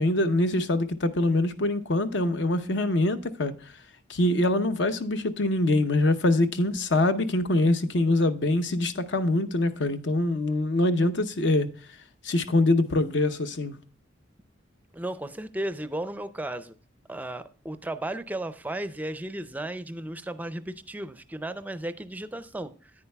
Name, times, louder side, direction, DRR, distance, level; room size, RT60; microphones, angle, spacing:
voice 1, 0.0-3.5 4.1-11.7 12.2-13.8, left 2 dB, 65° left, 0.7 m, -24 dB
voice 2, 14.9-16.8 17.1-22.9, right 1 dB, 10° right, 0.4 m, -34 dB
9.7 x 9.5 x 2.2 m
head